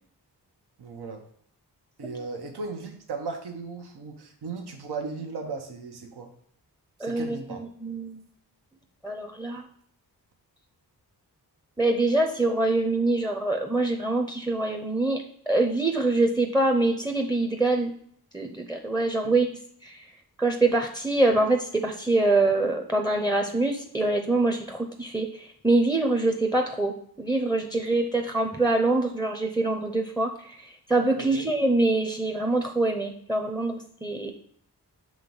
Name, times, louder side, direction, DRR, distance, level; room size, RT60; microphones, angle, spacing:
voice 1, 0.8-1.2 2.0-6.3 7.0-7.6 19.2-19.3 31.2-31.5, right 4 dB, 75° right, 3 dB, 1.0 m, -36 dB
voice 2, 7.0-8.3 9.0-9.7 11.8-17.9 18.3-19.5 19.8-20.1 20.4-34.3, right 2 dB, 5° right, 3 dB, 0.7 m, -25 dB
6.3 x 3.1 x 5.3 m, 0.63 s
wide cardioid pair, 75°, 40 cm